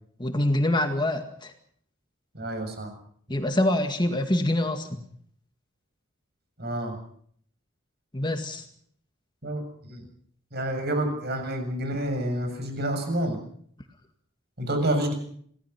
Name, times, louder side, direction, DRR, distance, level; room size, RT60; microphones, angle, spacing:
voice 1, 0.2-1.5 3.3-4.9 8.1-8.6, left 1 dB, 20° left, 6 dB, 2.0 m, -25 dB
voice 2, 2.3-2.9 6.6-7.0 9.4-10.0 10.5-13.4 14.6-15.1, right 1 dB, 50° right, 6 dB, 7.4 m, -28 dB
27.0 x 18.0 x 6.0 m, 0.62 s
head